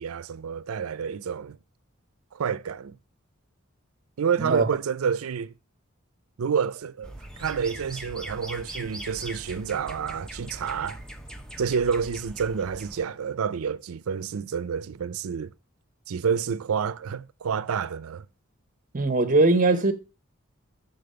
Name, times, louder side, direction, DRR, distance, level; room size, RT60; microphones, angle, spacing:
voice 1, 0.0-1.6 2.3-3.0 4.2-5.5 6.4-7.1 7.4-11.0 11.6-15.5 16.1-18.2, right 6 dB, 80° right, 0.4 m, -29 dB
voice 2, 4.4-4.7 18.9-19.9, right 2 dB, 40° right, 0.8 m, -20 dB
sound 1, 7.0-13.0, right 1 dB, 5° left, 0.7 m, -41 dB
6.8 x 4.1 x 6.6 m
head